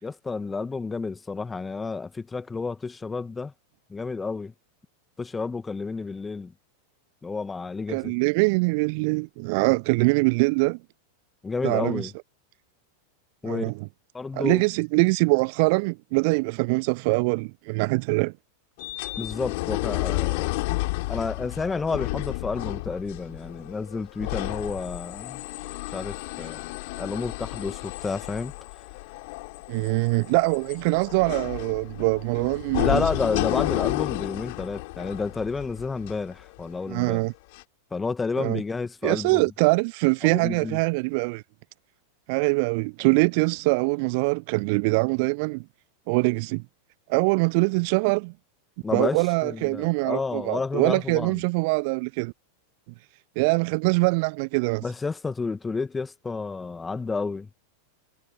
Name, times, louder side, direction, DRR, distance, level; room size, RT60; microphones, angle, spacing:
voice 1, 0.0-3.5 3.9-4.5 5.2-6.5 7.2-8.1 11.4-12.1 13.4-13.7 14.1-14.6 19.2-20.6 21.1-25.4 25.9-26.7 27.0-28.5 32.8-37.2 37.9-39.4 40.2-40.8 48.8-51.4 54.8-57.5, left 4 dB, 10° left, 2.1 m, -30 dB
voice 2, 7.9-10.8 11.6-12.1 13.4-13.9 14.3-18.3 26.4-26.5 29.7-33.0 36.9-37.3 38.4-38.6 39.0-41.4 42.3-45.6 46.1-46.6 47.1-48.3 48.9-52.3 53.4-54.8, right 31 dB, 45° right, 0.4 m, -23 dB
sound 1, 18.8-37.0 37.5-37.6, left 24 dB, 50° left, 3.8 m, -32 dB
figure-of-eight pair, 90°, 0 cm